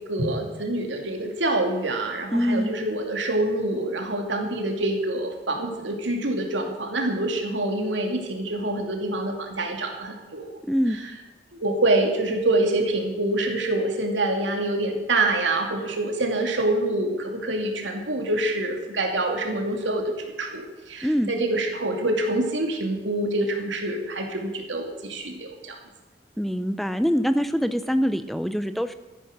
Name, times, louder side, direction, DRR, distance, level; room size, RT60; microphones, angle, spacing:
voice 1, 0.1-10.5 11.6-25.8, right 2 dB, 90° right, 3 dB, 2.6 m, -26 dB
voice 2, 2.3-2.7 10.7-11.0 21.0-21.3 26.4-28.9, equal, ahead, 11 dB, 0.5 m, -24 dB
13.5 x 10.0 x 6.6 m, 1.2 s
head